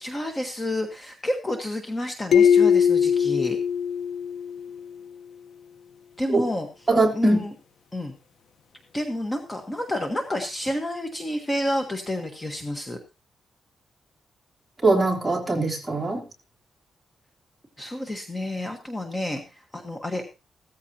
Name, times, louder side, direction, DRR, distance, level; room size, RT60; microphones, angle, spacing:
voice 1, 0.0-3.6 6.2-6.7 7.1-7.5 7.9-8.1 8.9-13.0 17.8-20.2, left 1 dB, 15° left, 4 dB, 1.3 m, -29 dB
sound 1, 2.3-4.9, left 7 dB, 60° left, 1.0 m, -20 dB
voice 2, 6.9-7.4 14.8-16.2, right 2 dB, 10° right, -2 dB, 3.1 m, -21 dB
16.0 x 14.0 x 2.9 m, 0.29 s
wide cardioid pair, 160°, 0 cm